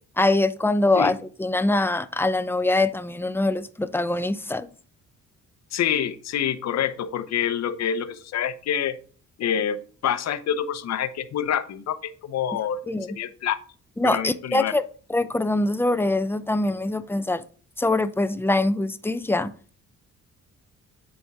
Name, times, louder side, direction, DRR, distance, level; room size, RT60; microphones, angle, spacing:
voice 1, 0.2-4.7 12.9-13.1 14.0-14.8 15.1-17.4 17.8-19.5, left 2 dB, 10° left, 0.5 m, -23 dB
voice 2, 5.7-9.0 9.4-9.8 10.0-13.6 14.0-14.7, left 9 dB, 60° left, 0.8 m, -27 dB
8.3 x 4.4 x 3.5 m
cardioid pair, 90°, 30 cm